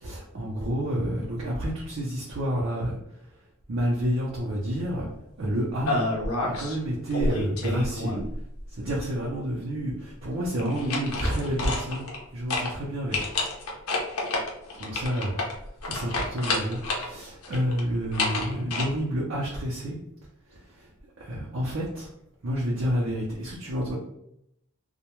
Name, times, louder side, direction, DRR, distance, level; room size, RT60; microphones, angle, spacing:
voice 1, 0.0-3.0 3.7-5.1 5.4-6.0 6.4-8.1 8.7-13.2 14.8-15.5 15.8-20.0 20.5-20.9 21.2-22.1 22.4-24.0, equal, 60° right, -5 dB, 0.6 m, -29 dB
sound 1, 5.9-6.8 7.1-8.4 10.6-12.2 12.5-12.7 13.1-17.1 17.4-18.8, left 2 dB, 80° left, 0.6 m, -29 dB
2.2 x 2.1 x 2.9 m, 0.78 s
head